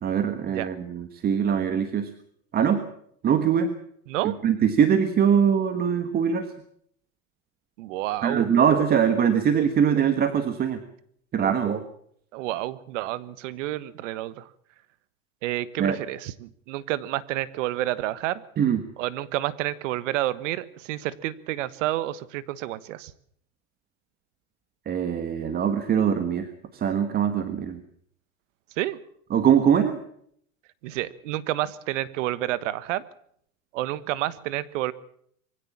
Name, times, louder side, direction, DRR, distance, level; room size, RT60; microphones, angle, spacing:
voice 1, 0.0-2.1 2.5-2.8 3.2-3.7 4.2-6.5 8.2-10.8 11.3-11.8 15.8-16.0 18.6-18.8 24.9-26.5 26.7-27.8 29.3-30.0, right 8 dB, 25° right, 9 dB, 1.5 m, -22 dB
voice 2, 4.1-4.4 7.8-8.5 12.3-14.5 15.4-18.4 19.0-23.1 28.8-29.0 30.8-33.0 33.7-34.9, right 15 dB, 60° right, 17 dB, 1.5 m, -29 dB
23.0 x 16.5 x 7.3 m, 0.66 s
supercardioid pair, 150°, 41 cm